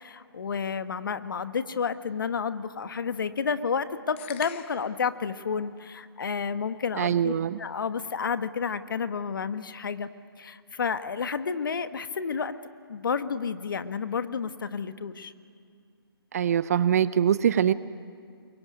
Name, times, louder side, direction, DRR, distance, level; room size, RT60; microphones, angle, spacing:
voice 1, 0.0-7.3 7.6-10.1 10.4-12.5 12.9-15.3, left 6 dB, 55° left, 11 dB, 1.3 m, -30 dB
sound 1, 4.2-5.0, left 11 dB, 30° left, 1.1 m, -41 dB
voice 2, 7.0-7.6 16.3-17.7, right 9 dB, 40° right, 16 dB, 0.7 m, -23 dB
27.0 x 23.0 x 9.4 m, 2.3 s
figure-of-eight pair, 145°, 13 cm